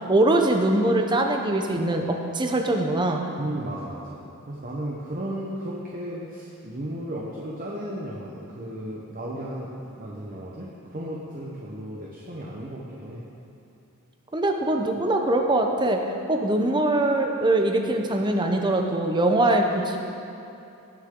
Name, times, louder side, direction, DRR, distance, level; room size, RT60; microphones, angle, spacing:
voice 1, 0.1-3.2 14.3-16.0 16.3-20.0, right 1 dB, 20° right, 3 dB, 0.8 m, -22 dB
voice 2, 3.4-4.2 4.5-13.2, right 1 dB, 40° right, -4 dB, 1.0 m, -34 dB
19.0 x 6.6 x 3.8 m, 2.9 s
head